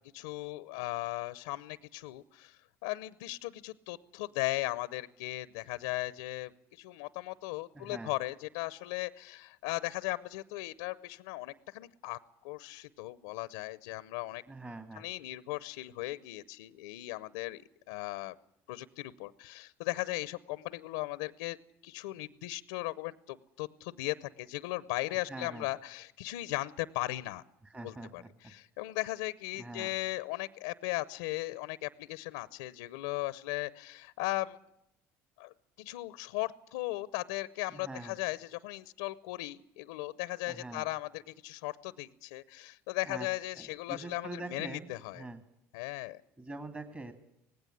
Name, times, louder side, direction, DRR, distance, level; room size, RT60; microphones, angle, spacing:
voice 1, 0.1-12.2 12.4-14.4 14.9-17.6 17.9-18.3 18.7-21.6 21.8-27.4 27.8-34.6 35.4-45.2 45.7-46.2, left 19 dB, 90° left, 17 dB, 0.7 m, -37 dB
voice 2, 7.7-8.1 14.5-15.1 25.3-25.7 27.6-28.5 29.5-29.9 37.7-38.2 40.5-40.9 43.0-43.3 43.6-44.9 45.1-45.4 46.4-47.1, right 2 dB, 20° right, 8 dB, 2.4 m, -44 dB
18.5 x 16.5 x 9.9 m, 0.82 s
supercardioid pair, 90°, 7 cm